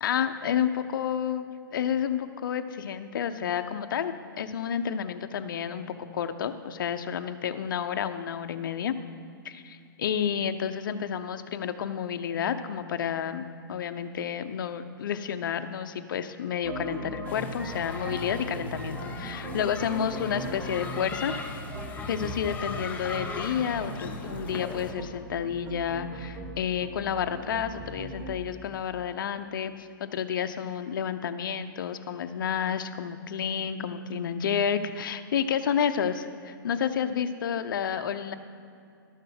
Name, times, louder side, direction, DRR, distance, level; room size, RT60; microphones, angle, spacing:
voice 1, 0.0-5.8 6.1-9.0 9.4-21.3 22.1-38.3, left 8 dB, 65° left, 9 dB, 0.8 m, -30 dB
sound 1, 16.6-28.4, right 1 dB, 15° right, 1.2 m, -39 dB
sound 2, 17.2-24.9, left 4 dB, 15° left, 0.8 m, -39 dB
12.5 x 6.6 x 6.6 m, 2.4 s
hypercardioid pair, 150°, 12 cm